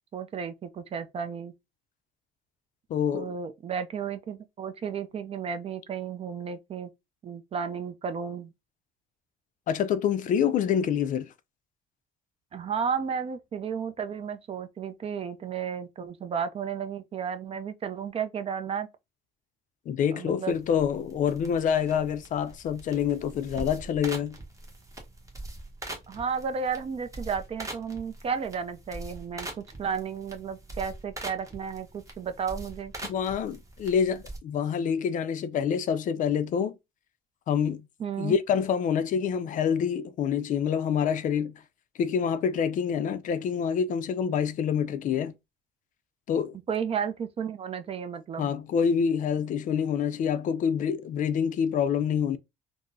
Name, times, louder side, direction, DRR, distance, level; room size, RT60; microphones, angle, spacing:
voice 1, 0.1-1.5 3.1-6.9 7.2-8.5 12.5-18.9 20.1-20.6 26.1-29.5 29.8-32.9 38.0-38.4 46.7-48.5, right 6 dB, 35° right, 0.4 m, -33 dB
voice 2, 2.9-3.3 9.7-11.3 19.9-24.4 33.1-36.7 37.5-37.8 38.2-41.6 42.0-45.3 46.3-46.6 48.4-52.4, left 7 dB, 50° left, 0.4 m, -27 dB
sound 1, 20.5-34.4, right 2 dB, 20° right, 1.0 m, -43 dB
3.6 x 2.0 x 2.5 m
cardioid pair, 110°, 17 cm